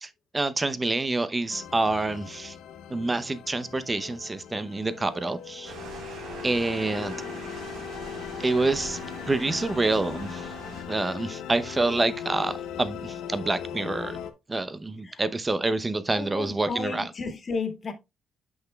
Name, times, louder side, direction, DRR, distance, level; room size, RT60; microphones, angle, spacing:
voice 1, 0.0-2.6 2.9-5.7 6.4-7.2 8.4-9.0 9.3-10.5 10.9-14.2 14.5-17.1, right 2 dB, 20° right, 0.7 m, -27 dB
sound 1, 1.5-14.3, left 9 dB, 90° left, 0.8 m, -39 dB
sound 2, 5.6-10.8, right 3 dB, 85° right, 3.9 m, -41 dB
voice 2, 16.1-17.9, left 4 dB, 40° left, 1.8 m, -33 dB
8.6 x 6.0 x 2.3 m
cardioid pair, 90°, 0 cm